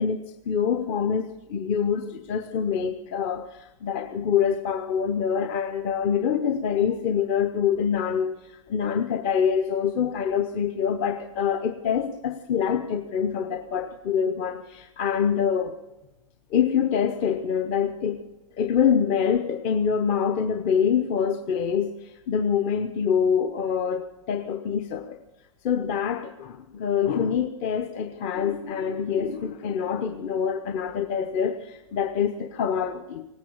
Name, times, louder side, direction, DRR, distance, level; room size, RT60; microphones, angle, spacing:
voice 1, 0.0-15.7 16.5-18.2 18.6-25.2 25.6-33.2, left 7 dB, 30° left, 6 dB, 1.0 m, -25 dB
18.0 x 9.3 x 8.6 m, 0.96 s
figure-of-eight pair, 110°, 19 cm